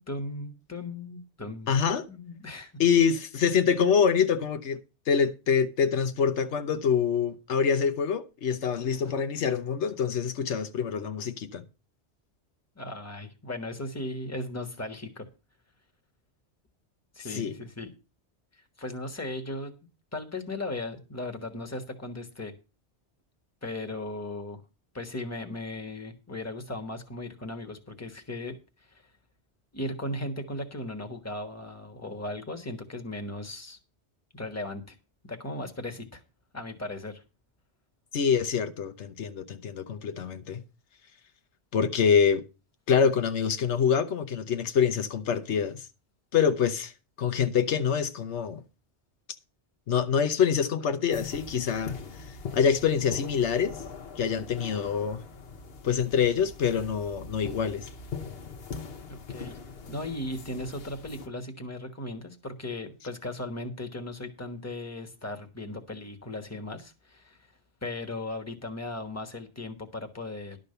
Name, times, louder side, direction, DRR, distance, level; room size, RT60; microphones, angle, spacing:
voice 1, 0.0-1.8 2.1-2.7 12.7-15.3 17.1-17.9 18.8-19.7 20.1-22.5 23.6-24.6 24.9-28.6 28.9-29.0 29.7-33.8 34.3-34.9 35.2-36.2 36.5-37.2 59.1-59.6 59.9-67.4 67.8-70.6, left 2 dB, 15° left, 1.3 m, -37 dB
voice 2, 1.7-2.0 2.8-4.8 5.1-11.6 17.3-17.5 38.1-40.6 41.7-42.4 42.9-45.9 46.3-46.9 47.2-48.6 49.9-52.0 52.5-53.7 54.2-55.2 55.8-57.9, left 7 dB, 85° left, 1.2 m, -25 dB
sound 1, 51.1-61.3, left 5 dB, 60° left, 1.2 m, -42 dB
11.5 x 5.2 x 6.7 m
omnidirectional pair, 1.1 m